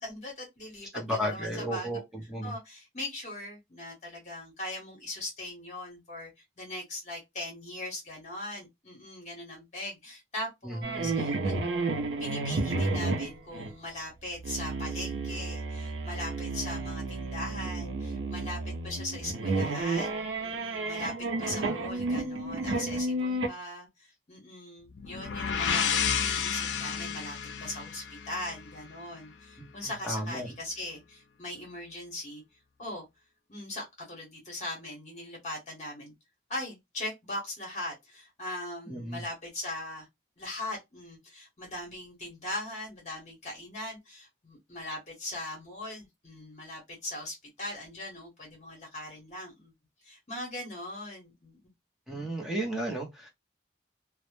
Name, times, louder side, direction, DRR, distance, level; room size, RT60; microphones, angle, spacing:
voice 1, 0.0-1.9 2.4-6.3 6.6-11.6 12.2-21.1 21.4-32.4 32.8-33.1 33.5-36.1 36.5-40.1 40.4-49.7 50.0-51.6, left 1 dB, 40° left, 0.8 m, -40 dB
voice 2, 0.9-2.0 2.3-2.5 10.6-11.1 29.8-30.5 38.9-39.2 52.1-53.3, equal, ahead, 0.6 m, -33 dB
sound 1, 10.8-13.7 14.4-23.5, right 2 dB, 85° right, 0.5 m, -32 dB
sound 2, 25.0-28.8, left 7 dB, 85° left, 0.4 m, -31 dB
2.0 x 2.0 x 3.0 m
head